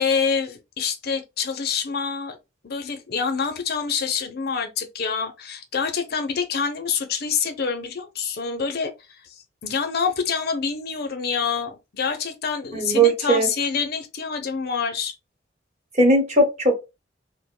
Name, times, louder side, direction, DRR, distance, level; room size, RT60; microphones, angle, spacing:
voice 1, 0.0-2.4 2.6-8.9 9.3-15.2, left 6 dB, 55° left, 0.5 m, -26 dB
voice 2, 12.7-13.5 16.0-16.8, right 2 dB, 35° right, 1.1 m, -18 dB
2.5 x 2.1 x 3.7 m
head